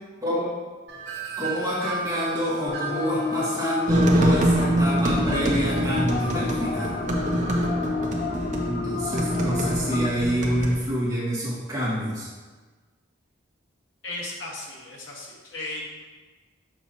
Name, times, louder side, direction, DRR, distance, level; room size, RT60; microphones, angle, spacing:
voice 1, 0.2-0.5 1.4-7.0 8.6-12.3, equal, 15° right, -9 dB, 1.8 m, -27 dB
Wind chime, 0.9-7.6, right 5 dB, 65° right, 1.4 m, -37 dB
sound 1, 2.7-10.1, left 4 dB, 35° left, 0.3 m, -31 dB
sound 2, 3.9-10.8, right 1 dB, 35° right, 0.7 m, -25 dB
voice 2, 14.0-15.9, left 2 dB, 80° left, -3 dB, 1.5 m, -35 dB
7.1 x 6.0 x 2.9 m, 1.3 s
head